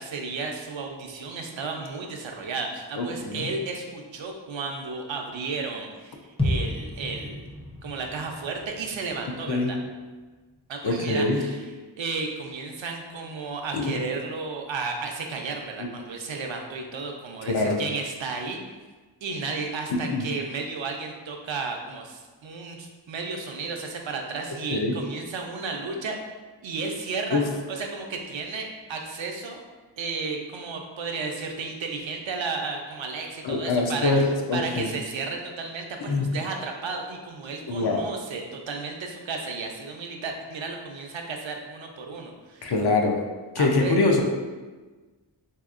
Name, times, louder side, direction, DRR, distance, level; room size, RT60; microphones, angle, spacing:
voice 1, 0.0-7.5 7.8-9.8 10.7-11.6 12.0-18.7 19.2-26.2 26.6-27.4 27.7-29.6 30.0-42.7 43.6-44.0, right 4 dB, 80° right, 2 dB, 0.5 m, -33 dB
voice 2, 3.0-3.5 9.5-9.7 10.8-11.4 13.7-14.0 15.8-15.9 17.5-17.8 20.1-20.3 24.7-25.0 27.3-27.5 33.4-34.9 36.0-36.3 37.7-38.1 42.6-43.2 43.5-44.2, left 3 dB, 60° left, 1 dB, 0.5 m, -24 dB
sound 1, 6.4-10.3 10.6-10.7, left 1 dB, 15° left, 0.5 m, -32 dB
3.4 x 2.8 x 2.4 m, 1.3 s
wide cardioid pair, 60°, 44 cm